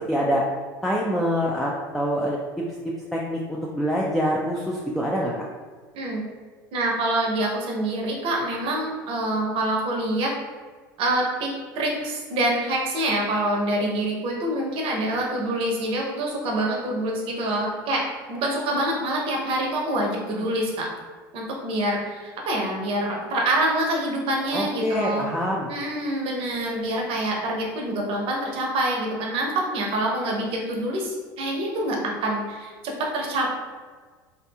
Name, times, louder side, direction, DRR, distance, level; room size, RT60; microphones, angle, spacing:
voice 1, 0.1-0.4 0.8-2.4 3.1-5.3 24.5-25.7, equal, ahead, -3 dB, 0.3 m, -25 dB
voice 2, 6.7-10.3 11.0-20.9 21.3-25.3 25.7-33.6, right 1 dB, 55° right, 0 dB, 0.7 m, -26 dB
2.6 x 2.6 x 2.3 m, 1.5 s
hypercardioid pair, 75°, 11 cm